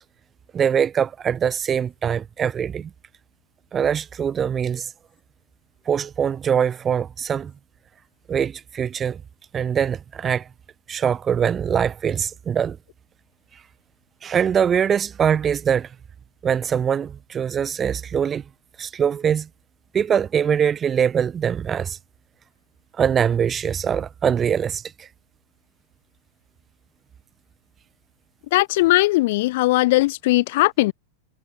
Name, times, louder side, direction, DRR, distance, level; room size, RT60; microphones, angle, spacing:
voice 1, 0.5-2.9 3.7-4.9 5.9-7.5 8.3-9.2 9.5-10.4 10.9-12.8 14.2-15.9 16.4-18.4 18.8-19.5 19.9-22.0 23.0-24.8, right 8 dB, 20° right, 1.0 m, -22 dB
voice 2, 28.5-30.9, left 19 dB, 50° left, 0.7 m, -19 dB
figure-of-eight pair, 90°, 0 cm